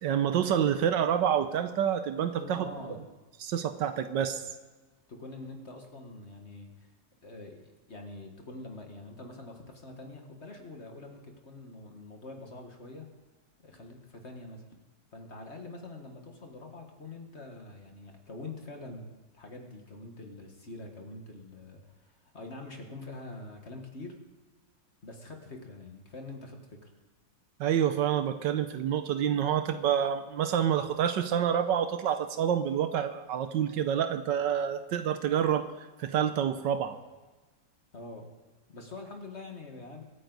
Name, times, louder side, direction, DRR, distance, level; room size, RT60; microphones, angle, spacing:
voice 1, 0.0-2.6 3.4-4.4 27.6-35.7 36.0-37.0, right 9 dB, 75° right, 10 dB, 1.4 m, -28 dB
voice 2, 2.4-3.0 5.1-6.9 7.2-7.6 7.9-13.1 13.6-14.6 15.1-19.1 19.3-24.2 25.0-26.9 37.9-38.3 38.7-40.0, left 2 dB, 35° left, 3 dB, 1.8 m, -45 dB
24.0 x 9.3 x 4.0 m, 1.3 s
omnidirectional pair, 2.0 m